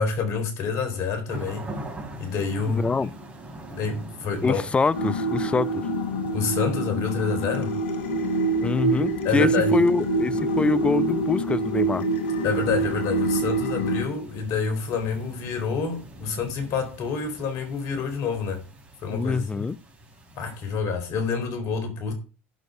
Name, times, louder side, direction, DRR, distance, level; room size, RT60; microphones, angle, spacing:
voice 1, 0.0-1.7 2.2-2.8 3.7-4.6 6.3-7.7 9.2-9.8 12.4-18.6 19.0-19.6 20.4-22.1, left 5 dB, 50° left, 4.0 m, -28 dB
sound 1, 1.3-20.8, right 1 dB, 20° right, 4.8 m, -43 dB
voice 2, 2.7-3.1 4.4-5.9 8.6-12.0 19.1-19.8, left 4 dB, 15° left, 0.6 m, -24 dB
sound 2, 4.9-14.1, right 2 dB, 65° left, 1.4 m, -25 dB
11.5 x 6.3 x 5.3 m
figure-of-eight pair, 75°, 7 cm